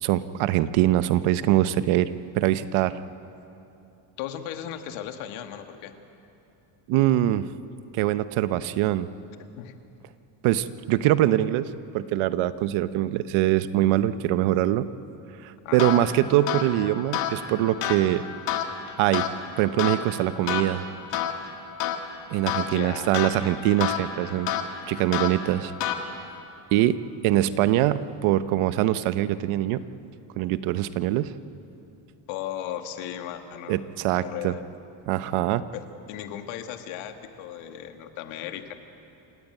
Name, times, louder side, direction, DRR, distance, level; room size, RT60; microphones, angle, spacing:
voice 1, 0.0-3.0 6.9-7.5 7.9-9.1 10.4-14.9 15.4-18.2 19.0-19.3 19.6-20.8 22.3-24.5 24.9-25.7 26.7-29.8 30.4-31.3 33.7-34.5 35.1-35.7, right 13 dB, 85° right, 13 dB, 1.0 m, -23 dB
voice 2, 4.2-6.0 9.4-9.8 15.6-15.9 22.6-23.1 32.3-33.8 34.1-34.7 35.7-38.7, left 10 dB, 90° left, 6 dB, 1.8 m, -36 dB
sound 1, 15.8-26.4, left 8 dB, 65° left, 2.2 m, -31 dB
27.5 x 15.5 x 9.2 m, 2.8 s
cardioid pair, 140°, 47 cm